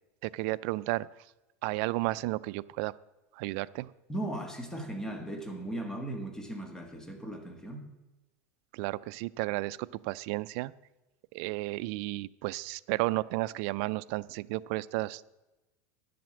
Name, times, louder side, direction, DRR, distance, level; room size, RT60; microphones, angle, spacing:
voice 1, 0.2-1.1 1.6-2.9 3.4-3.9 8.7-9.8 10.0-10.7 11.3-15.3, right 20 dB, 60° right, 17 dB, 0.4 m, -33 dB
voice 2, 4.1-7.9, right 1 dB, 5° left, 5 dB, 1.5 m, -37 dB
10.5 x 7.7 x 7.6 m, 1.0 s
supercardioid pair, 145°, 8 cm